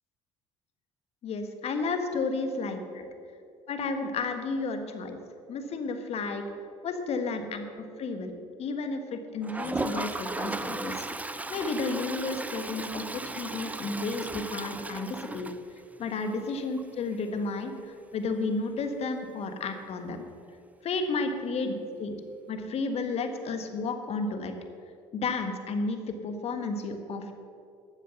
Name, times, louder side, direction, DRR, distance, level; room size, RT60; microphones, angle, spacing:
voice 1, 1.2-3.0 3.7-5.2 5.5-6.4 6.8-8.3 8.6-15.5 16.0-20.2 20.8-21.7 22.0-22.2 22.5-24.5 25.1-27.3, left 3 dB, 50° left, 6 dB, 1.5 m, -32 dB
Toilet flush, 9.4-16.1 16.5-16.6 16.8-16.9 17.1-17.2 19.8-19.9 21.2-21.3, right 2 dB, 10° right, 0.6 m, -36 dB
12.0 x 7.4 x 7.0 m, 2.5 s
supercardioid pair, 80°, 14 cm